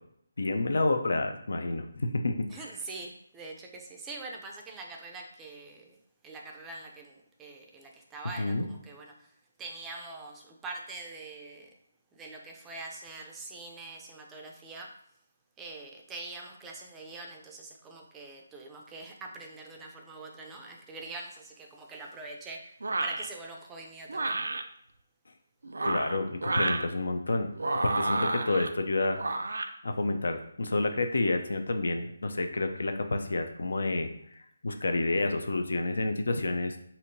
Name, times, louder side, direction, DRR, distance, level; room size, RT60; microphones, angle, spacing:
voice 1, 0.4-2.8 8.4-8.7 25.8-27.5 27.8-29.2 29.8-34.1 34.6-36.8, left 2 dB, 75° left, 6 dB, 0.5 m, -29 dB
voice 2, 2.5-5.9 6.2-9.1 9.6-11.7 12.1-14.9 15.6-22.6 23.0-24.4, right 3 dB, 10° right, 1 dB, 0.4 m, -44 dB
sound 1, 22.8-23.3 24.1-24.6 25.6-26.9 27.6-28.7 29.2-29.7, right 2 dB, 75° right, 0.3 m, -30 dB
4.3 x 2.7 x 2.6 m, 0.70 s
figure-of-eight pair, 155°, 0 cm